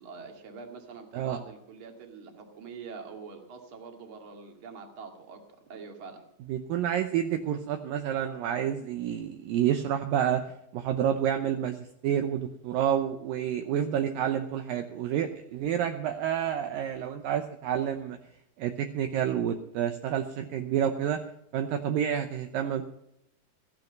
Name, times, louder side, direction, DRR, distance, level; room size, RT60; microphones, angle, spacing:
voice 1, 0.0-5.4 5.7-6.2, right 5 dB, 40° right, 4 dB, 2.6 m, -44 dB
voice 2, 6.5-18.2 18.6-21.2 21.5-22.8, right 9 dB, 75° right, 7 dB, 2.4 m, -29 dB
15.0 x 12.0 x 5.3 m, 0.78 s
omnidirectional pair, 4.5 m